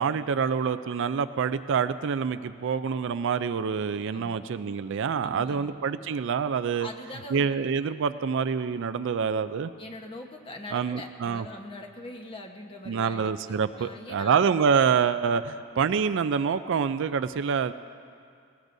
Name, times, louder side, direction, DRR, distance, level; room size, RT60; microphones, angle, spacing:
voice 1, 0.0-6.9 7.3-9.7 10.7-11.4 12.9-17.7, right 6 dB, 60° right, 12 dB, 0.4 m, -26 dB
voice 2, 5.2-5.7 6.8-7.5 9.8-14.4, left 1 dB, 25° left, 3 dB, 1.1 m, -42 dB
19.5 x 19.5 x 2.7 m, 2.3 s
head